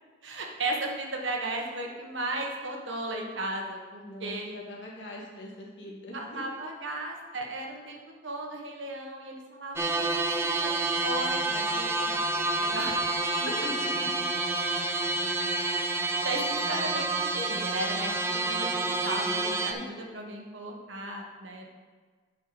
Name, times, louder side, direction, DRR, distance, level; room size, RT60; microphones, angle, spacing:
voice 1, 0.2-4.5 6.1-13.1 15.6-15.8 16.2-18.2 18.5-21.7, right 2 dB, 90° right, 1 dB, 1.4 m, -36 dB
voice 2, 4.0-6.6 13.4-14.3, left 1 dB, 80° left, -3 dB, 2.1 m, -42 dB
sound 1, 9.8-19.7, right 2 dB, 15° right, 0.4 m, -28 dB
8.7 x 5.6 x 5.1 m, 1.5 s
head